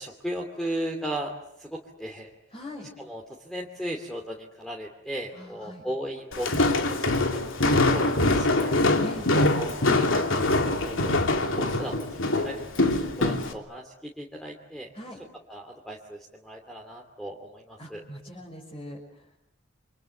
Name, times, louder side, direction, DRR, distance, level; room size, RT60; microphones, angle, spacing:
voice 1, 0.0-1.3 1.6-2.3 3.0-7.5 7.9-8.7 9.5-12.7 13.2-14.9 15.5-18.0, right 1 dB, ahead, 1 dB, 2.6 m, -36 dB
voice 2, 2.5-2.9 5.3-5.8 9.0-9.3 14.9-15.2 17.8-19.0, equal, 25° left, -3 dB, 6.0 m, -41 dB
Walk footsteps, 6.3-13.5, left 2 dB, 75° left, 2.9 m, -24 dB
28.5 x 26.0 x 7.8 m, 0.78 s
head